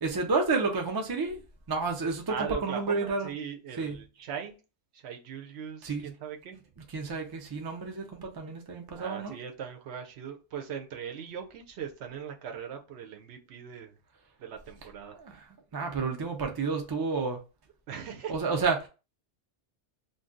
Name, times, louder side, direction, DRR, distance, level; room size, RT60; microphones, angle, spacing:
voice 1, 0.0-1.4 1.7-2.3 2.6-3.3 3.8-4.0 5.8-6.0 6.9-9.3 15.2-15.4 15.7-17.4 18.3-18.9, right 4 dB, 35° right, 0.3 m, -30 dB
voice 2, 2.3-4.5 4.9-6.6 8.9-14.0 14.4-15.2 17.9-18.4, right 8 dB, 70° right, 0.8 m, -39 dB
2.5 x 2.2 x 3.7 m
omnidirectional pair, 1.2 m